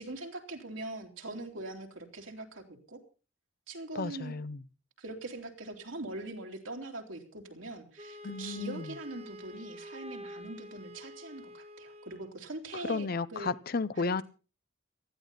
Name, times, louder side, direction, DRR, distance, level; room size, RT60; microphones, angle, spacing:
voice 1, 0.0-3.0 3.7-4.3 5.0-13.5 14.0-14.2, right 2 dB, 75° right, 3.2 m, -42 dB
voice 2, 3.9-4.6 8.2-8.9 12.8-14.2, left 4 dB, 50° left, 0.6 m, -33 dB
Wind instrument woodwind instrument, 8.0-12.4, left 1 dB, 30° right, 1.0 m, -48 dB
18.5 x 13.5 x 4.0 m
head